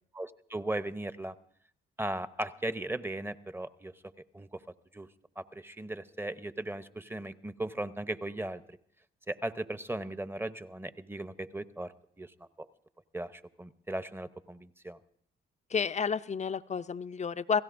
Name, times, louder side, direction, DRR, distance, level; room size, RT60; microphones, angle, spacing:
voice 1, 0.1-1.3 2.0-3.9 4.3-4.6 4.9-5.1 5.4-8.8 9.3-12.7 13.1-15.0, right 1 dB, 10° right, 12 dB, 0.8 m, -37 dB
voice 2, 15.7-17.6, left 6 dB, 35° left, 13 dB, 0.5 m, -31 dB
29.0 x 16.5 x 2.6 m, 0.67 s
supercardioid pair, 60°, 21 cm